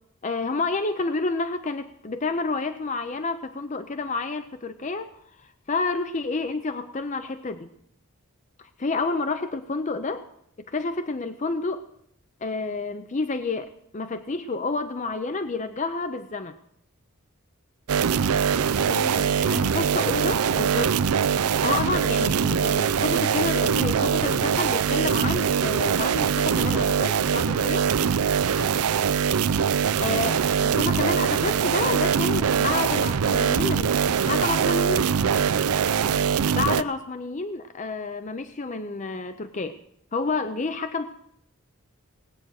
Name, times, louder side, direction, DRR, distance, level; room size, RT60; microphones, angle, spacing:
voice 1, 0.2-5.1 5.4-7.7 8.6-10.3 10.7-11.9 12.4-16.6 19.4-21.0 21.6-27.9 30.0-35.1 36.5-39.8 40.1-41.1, left 3 dB, 35° left, 10 dB, 0.5 m, -29 dB
sound 1, 17.9-36.8, right 7 dB, 85° right, 0.5 m, -23 dB
voice 2, 18.4-19.8 28.5-28.8 35.9-36.3, left 1 dB, 85° left, -1 dB, 3.7 m, -37 dB
19.0 x 9.0 x 6.4 m, 0.72 s
head